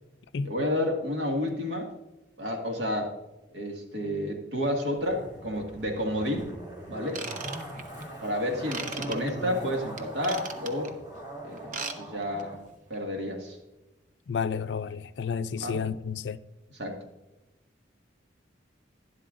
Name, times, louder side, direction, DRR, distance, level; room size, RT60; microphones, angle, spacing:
voice 1, 0.4-1.9 2.4-3.1 3.5-6.5 6.9-7.2 8.2-10.9 11.4-12.6 12.9-13.6 15.6-15.8 16.8-17.0, left 1 dB, 75° right, 1.9 m, -30 dB
Zipper (clothing), 5.0-12.6 12.9-13.0, right 1 dB, 25° right, 2.3 m, -40 dB
Ratchet pawl / Tools, 7.1-8.0 8.7-9.2 10.0-10.9 11.6-12.0 12.2-12.4 12.9-13.0, right 5 dB, 45° right, 0.8 m, -36 dB
voice 2, 14.3-16.4, left 6 dB, 70° left, 0.4 m, -31 dB
11.5 x 11.0 x 2.5 m
head